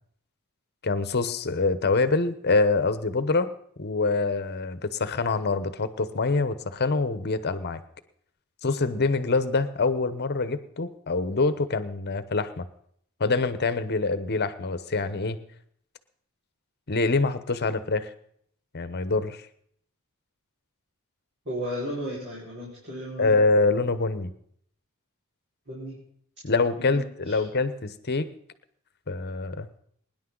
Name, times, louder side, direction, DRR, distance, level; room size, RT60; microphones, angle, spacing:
voice 1, 0.8-3.5 3.8-7.8 8.6-12.7 13.2-15.4 16.9-18.1 18.7-19.5 23.2-24.3 26.4-28.3 29.1-29.7, left 3 dB, 50° left, 12 dB, 1.0 m, -25 dB
voice 2, 21.4-23.3 25.7-26.0 26.8-27.4, equal, 50° right, -6 dB, 5.0 m, -35 dB
23.5 x 10.5 x 3.9 m, 0.64 s
head